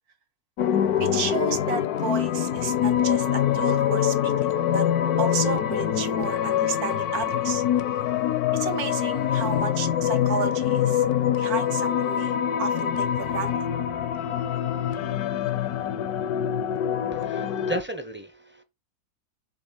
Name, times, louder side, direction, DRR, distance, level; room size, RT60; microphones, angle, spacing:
sound 1, 0.6-17.8, left 10 dB, 85° left, 1.2 m, -25 dB
voice 1, 1.0-4.9 5.2-7.6 8.5-11.0 11.3-13.5, right 6 dB, 80° right, 1.6 m, -32 dB
voice 2, 17.1-18.6, right 1 dB, 15° right, 0.4 m, -34 dB
6.6 x 3.0 x 5.7 m
omnidirectional pair, 1.6 m